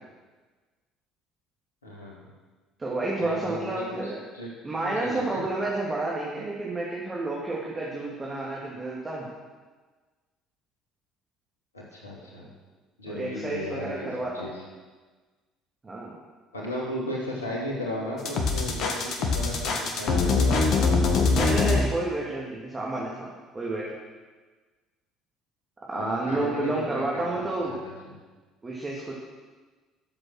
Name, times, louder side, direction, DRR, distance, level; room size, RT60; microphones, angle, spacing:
voice 1, 1.8-2.2 3.2-4.5 4.8-5.4 11.7-12.5 13.0-14.1 14.3-14.6 16.5-20.8 21.7-21.8 25.9-28.2, left 1 dB, 85° left, -3 dB, 2.6 m, -35 dB
voice 2, 2.8-4.2 4.6-9.3 12.4-12.5 13.0-14.5 15.8-16.2 21.3-23.8 25.9-27.7 28.6-29.1, right 2 dB, 25° right, -4 dB, 2.7 m, -30 dB
sound 1, 18.2-21.8, left 4 dB, 55° left, 1.8 m, -23 dB
12.5 x 7.6 x 6.3 m, 1.4 s
figure-of-eight pair, 55°, 0 cm